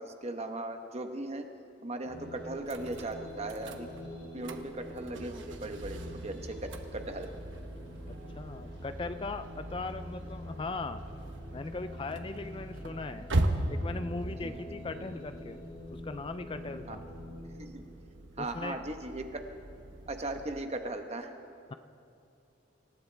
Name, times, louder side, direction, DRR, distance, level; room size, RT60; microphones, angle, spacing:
voice 1, 0.0-1.5 1.8-3.9 4.3-7.3 14.4-14.6 16.9-17.0 17.6-17.8 18.4-19.4 20.1-21.3, right 2 dB, 35° right, 6 dB, 1.1 m, -38 dB
sound 1, 2.0-17.6, left 1 dB, 55° left, 4.6 m, -45 dB
sound 2, 2.7-20.6, right 1 dB, 75° right, 1.1 m, -39 dB
voice 2, 8.1-11.0 11.5-13.3 13.7-15.6 15.9-17.0 18.4-18.8, left 3 dB, 25° left, 10 dB, 0.4 m, -39 dB
27.0 x 15.5 x 3.4 m, 2.7 s
head